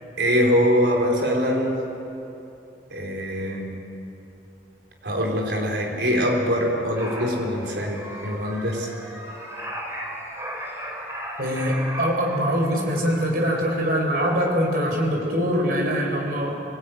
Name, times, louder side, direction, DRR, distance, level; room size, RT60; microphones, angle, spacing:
voice 1, 0.2-1.8 2.9-3.8 5.0-8.9, equal, 70° right, 1 dB, 4.1 m, -23 dB
sound 1, 7.0-14.1 14.3-14.5, equal, 15° right, 3.3 m, -36 dB
voice 2, 11.4-16.6, equal, 55° right, 1 dB, 4.3 m, -23 dB
25.5 x 19.5 x 9.2 m, 2.9 s
head